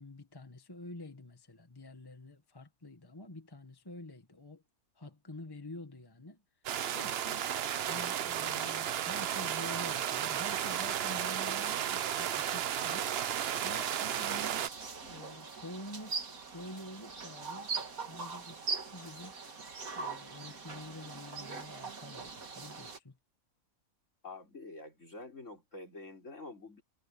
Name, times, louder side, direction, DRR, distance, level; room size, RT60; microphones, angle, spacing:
voice 1, 0.0-4.6 4.9-7.5 7.8-13.1 13.6-14.7 15.1-16.3 16.5-17.7 18.1-19.4 19.9-23.2, left 1 dB, 15° left, 1.5 m, -48 dB
sound 1, 6.6-14.7, right 10 dB, 55° right, 0.7 m, -33 dB
sound 2, 12.8-23.0, right 4 dB, 75° right, 2.5 m, -42 dB
voice 2, 24.2-26.8, left 2 dB, 55° left, 4.9 m, -47 dB
omnidirectional pair, 1.5 m